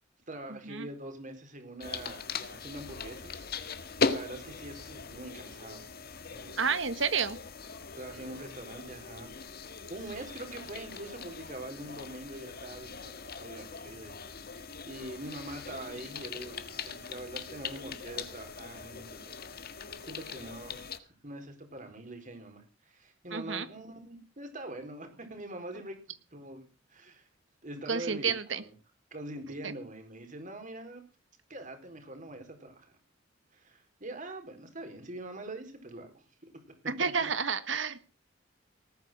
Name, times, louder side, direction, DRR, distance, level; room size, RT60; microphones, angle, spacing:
voice 1, 0.3-3.4 4.1-5.9 6.3-6.7 7.9-9.3 9.6-14.1 14.4-26.0 26.3-27.3 27.6-28.7 29.1-31.0 31.5-33.0 33.5-36.2 37.0-37.1, right 1 dB, 40° right, 6 dB, 4.4 m, -44 dB
sound 1, 1.8-21.0, left 4 dB, 55° left, 1.5 m, -40 dB
voice 2, 6.6-7.4 23.3-23.7 27.9-28.6 29.6-29.7 36.9-38.1, right 5 dB, 75° right, 12 dB, 1.7 m, -30 dB
19.5 x 9.3 x 6.2 m, 0.35 s
head